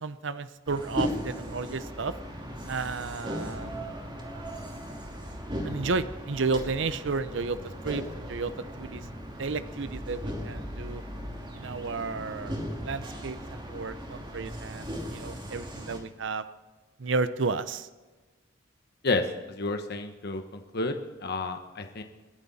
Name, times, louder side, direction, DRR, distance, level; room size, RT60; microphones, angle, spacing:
voice 1, 0.0-2.1 2.7-3.9 5.6-9.1 9.4-11.0 11.5-16.4 17.0-17.9, right 4 dB, 70° right, 13 dB, 0.7 m, -32 dB
sound 1, 0.7-16.0, equal, 25° right, 2.6 m, -37 dB
voice 2, 19.0-20.9 21.2-22.0, left 3 dB, 55° left, 6 dB, 1.1 m, -30 dB
27.0 x 11.0 x 4.2 m, 1.3 s
head